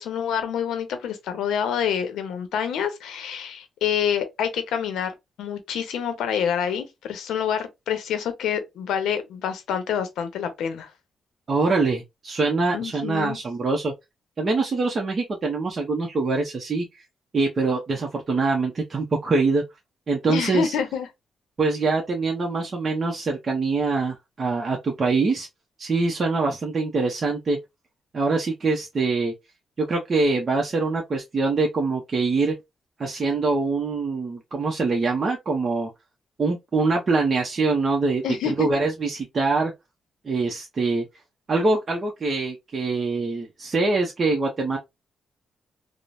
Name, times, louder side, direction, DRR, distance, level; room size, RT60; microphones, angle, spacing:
voice 1, 0.0-5.1 5.4-10.9 12.7-13.4 20.3-21.1 38.2-38.7, left 8 dB, 90° left, 0.6 m, -27 dB
voice 2, 11.5-13.9 14.4-17.0 17.3-19.6 20.1-20.7 21.6-25.5 25.8-27.6 28.1-29.3 29.8-32.5 33.0-35.9 36.4-39.7 40.2-41.1 41.5-44.8, right 3 dB, 45° right, 0.6 m, -24 dB
3.1 x 2.0 x 2.5 m
cardioid pair, 75°, 0 cm